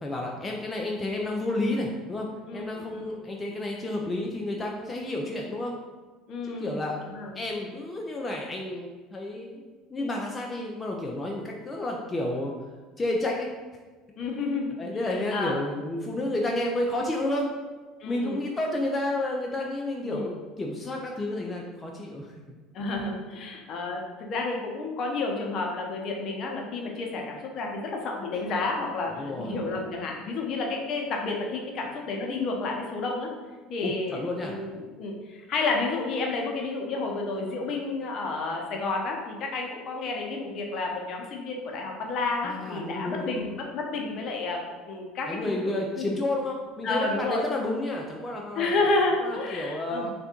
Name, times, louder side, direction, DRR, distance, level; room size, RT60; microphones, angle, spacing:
voice 1, 0.0-5.7 6.4-7.0 7.4-12.5 13.0-13.5 14.8-17.5 18.1-22.3 29.1-29.6 33.8-34.5 42.4-43.6 45.3-48.7 49.2-50.1, left 1 dB, 20° left, -1 dB, 0.5 m, -31 dB
voice 2, 2.5-3.1 6.3-7.4 14.2-14.7 15.3-15.6 18.0-18.4 20.0-20.3 22.7-33.3 33.7-44.6 44.9-46.1 46.8-47.4 48.5-50.1, left 3 dB, 55° left, 0 dB, 0.8 m, -30 dB
3.4 x 2.6 x 4.4 m, 1.3 s
supercardioid pair, 85°, 0 cm